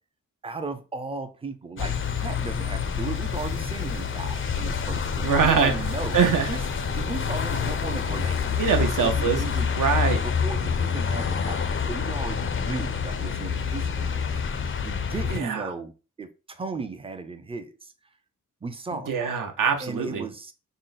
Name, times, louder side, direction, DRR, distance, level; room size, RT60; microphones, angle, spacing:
voice 1, 0.4-6.2 6.5-6.6 6.9-8.5 8.8-9.7 10.2-14.2 14.6-15.9 16.2-17.9 18.6-19.1 19.8-20.5, right 4 dB, 15° right, 9 dB, 0.4 m, -36 dB
sound 1, 1.8-15.4, left 6 dB, 40° left, 0.4 m, -27 dB
voice 2, 5.2-6.5 8.6-9.4 9.8-10.2 15.2-15.7 18.9-20.3, right 6 dB, 70° right, 5 dB, 0.8 m, -24 dB
3.8 x 2.1 x 4.0 m, 0.32 s
wide cardioid pair, 100°, 33 cm